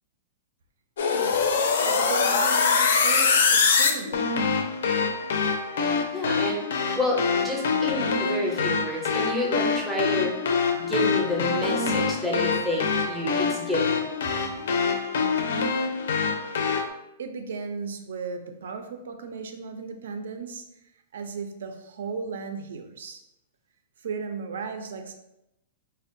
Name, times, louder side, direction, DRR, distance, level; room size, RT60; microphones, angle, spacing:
sound 1, 1.0-16.9, left 5 dB, 65° left, 0.4 m, -24 dB
voice 1, 1.0-1.3 1.8-4.3 17.2-20.6 21.1-23.2 24.0-25.1, right 5 dB, 70° right, 6 dB, 0.4 m, -35 dB
voice 2, 6.1-6.6 7.0-10.3 10.8-14.0, left 1 dB, ahead, -3 dB, 0.5 m, -29 dB
4.3 x 2.1 x 2.5 m, 0.87 s
supercardioid pair, 180°, 0 cm